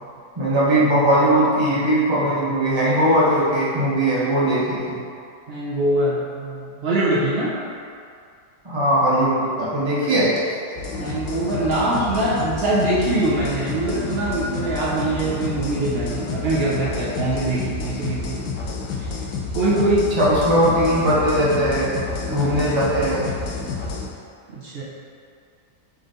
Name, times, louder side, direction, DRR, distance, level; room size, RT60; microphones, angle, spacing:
voice 1, 0.4-5.0 8.6-10.3 20.2-21.9 22.3-23.2, right 1 dB, 25° right, -8 dB, 0.7 m, -19 dB
voice 2, 5.5-7.6 10.9-18.5 19.0-19.1 19.5-20.1 22.2-22.6 24.5-24.8, right 2 dB, 85° right, -7 dB, 0.5 m, -23 dB
sound 1, 10.8-24.1, left 4 dB, 85° left, 1.3 m, -30 dB
3.9 x 3.5 x 3.7 m, 2.3 s
omnidirectional pair, 1.8 m